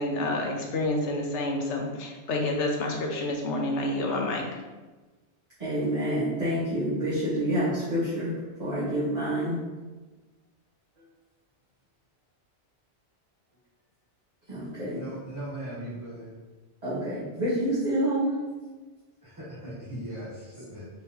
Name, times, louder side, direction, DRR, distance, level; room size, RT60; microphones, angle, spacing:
voice 1, 0.0-4.4, left 2 dB, 90° left, 1 dB, 1.1 m, -28 dB
voice 2, 5.6-8.3 8.6-9.6 14.5-15.0 16.8-18.4, right 1 dB, 35° right, -13 dB, 1.2 m, -27 dB
voice 3, 15.0-16.3 19.2-20.9, right 1 dB, 20° right, -9 dB, 0.8 m, -39 dB
4.5 x 3.5 x 2.8 m, 1.2 s
omnidirectional pair, 1.2 m